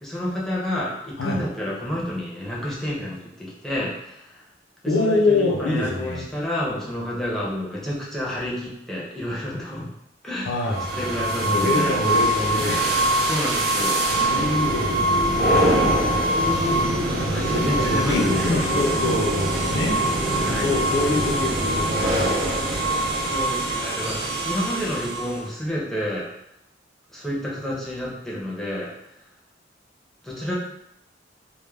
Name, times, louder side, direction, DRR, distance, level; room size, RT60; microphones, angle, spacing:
voice 1, 0.0-4.4 4.8-9.9 10.2-10.7 11.0-12.0 13.2-14.0 17.0-18.5 20.4-20.7 23.3-26.3 27.1-28.9 30.2-30.5, left 1 dB, ahead, -6 dB, 0.6 m, -29 dB
voice 2, 4.9-6.2 10.5-10.9 11.4-12.8 14.1-15.7 17.5-20.0 20.6-22.4, left 2 dB, 75° left, -2 dB, 0.6 m, -25 dB
Industrial crane movement, 10.7-25.5, right 1 dB, 55° right, 0.5 m, -23 dB
2.2 x 2.1 x 3.2 m, 0.79 s
head